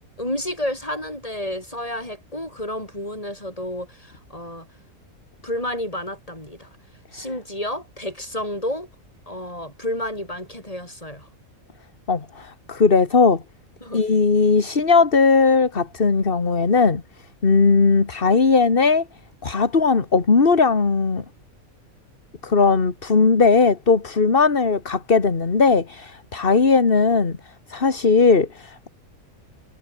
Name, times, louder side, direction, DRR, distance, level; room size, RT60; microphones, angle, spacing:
voice 1, 0.2-4.7 5.4-6.7 7.1-8.9 9.3-11.3 13.8-14.0, left 1 dB, 25° left, 8.1 m, -30 dB
voice 2, 12.1-13.4 13.9-17.0 17.4-19.1 19.4-21.2 22.4-27.4 27.7-28.9, left 4 dB, 40° left, 2.0 m, -18 dB
omnidirectional pair, 1.5 m